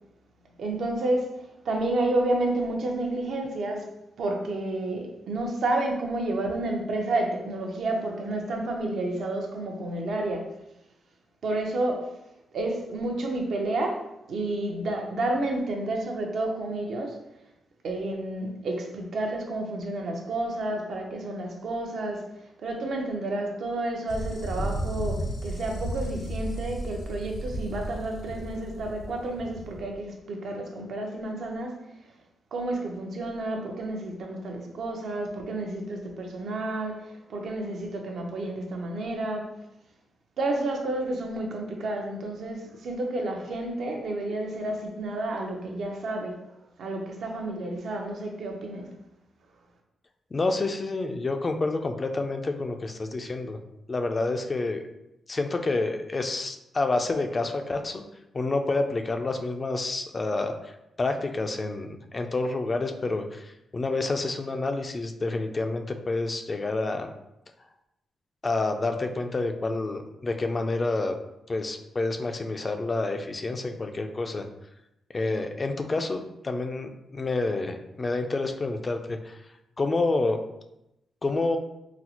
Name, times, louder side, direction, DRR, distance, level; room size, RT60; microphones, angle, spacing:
voice 1, 0.6-1.4 1.6-3.9 4.2-10.5 11.4-12.1 12.5-17.2 17.8-22.3 22.6-31.8 32.5-39.5 40.4-46.3 46.8-48.9, right 2 dB, 70° right, 1 dB, 0.6 m, -30 dB
sound 1, 24.1-29.9, right 1 dB, 80° left, 0.6 m, -34 dB
voice 2, 50.3-53.6 53.9-54.8 55.3-58.0 58.3-60.7 61.0-67.1 68.4-71.2 71.5-74.5 75.1-79.4 79.8-80.4 81.2-81.6, left 3 dB, 35° left, 6 dB, 0.3 m, -28 dB
4.0 x 2.0 x 2.8 m, 0.86 s
cardioid pair, 95°, 0 cm